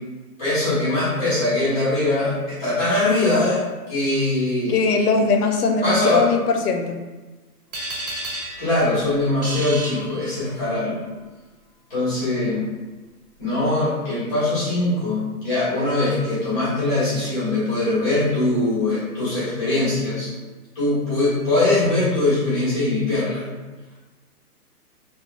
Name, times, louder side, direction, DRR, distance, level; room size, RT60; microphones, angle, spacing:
voice 1, 0.4-3.6 3.9-4.8 5.8-6.2 8.6-11.0 11.9-12.6 13.4-20.3 20.7-23.5, left 2 dB, ahead, -12 dB, 0.9 m, -22 dB
voice 2, 4.7-7.0, left 4 dB, 75° left, 3 dB, 0.5 m, -20 dB
sound 1, 7.7-10.8, right 1 dB, 65° right, 1.4 m, -33 dB
3.1 x 2.3 x 2.3 m, 1.2 s
hypercardioid pair, 170°, 46 cm